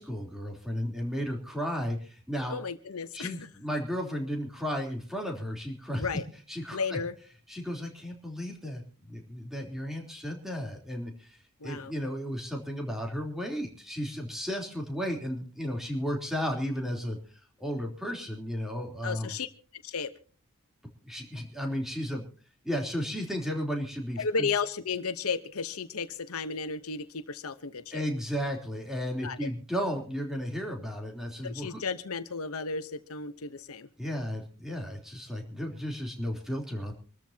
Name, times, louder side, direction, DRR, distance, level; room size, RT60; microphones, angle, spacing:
voice 1, 0.0-2.6 3.1-6.1 6.5-7.0 7.5-8.8 9.1-11.4 11.6-17.2 17.6-19.4 21.0-22.2 22.6-24.5 27.9-31.8 34.0-36.9, equal, ahead, 1 dB, 3.4 m, -34 dB
voice 2, 2.5-3.4 6.0-6.2 6.7-7.2 11.6-11.9 19.0-19.5 19.8-20.1 24.2-28.0 29.2-29.5 31.4-33.9, left 5 dB, 80° left, 12 dB, 1.0 m, -33 dB
26.0 x 13.5 x 2.8 m, 0.39 s
head